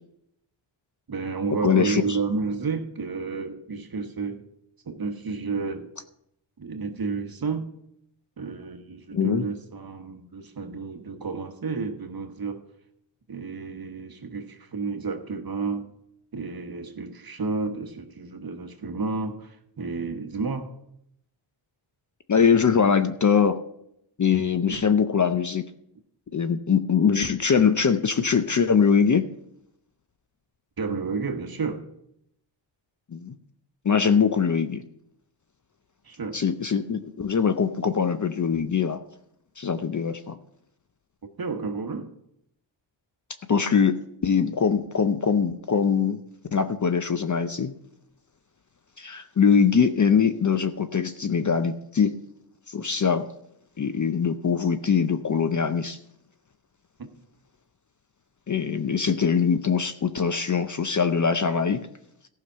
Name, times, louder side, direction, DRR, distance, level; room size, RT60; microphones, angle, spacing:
voice 1, 1.1-4.4 4.8-5.9 6.6-7.7 8.4-12.6 13.3-15.9 16.3-20.7 24.7-24.8 30.8-31.8 36.0-36.4 41.4-42.2 57.0-57.1, right 4 dB, 45° right, 6 dB, 1.2 m, -31 dB
voice 2, 1.6-2.2 9.1-9.5 22.3-23.6 24.2-25.6 26.3-29.2 33.1-33.4 33.8-34.8 36.3-39.0 39.6-40.4 43.5-46.2 46.5-47.7 49.0-52.1 52.7-53.3 53.8-56.0 58.5-61.9, left 6 dB, 40° left, 9 dB, 0.6 m, -22 dB
14.5 x 5.8 x 5.6 m, 0.76 s
wide cardioid pair, 115°, 48 cm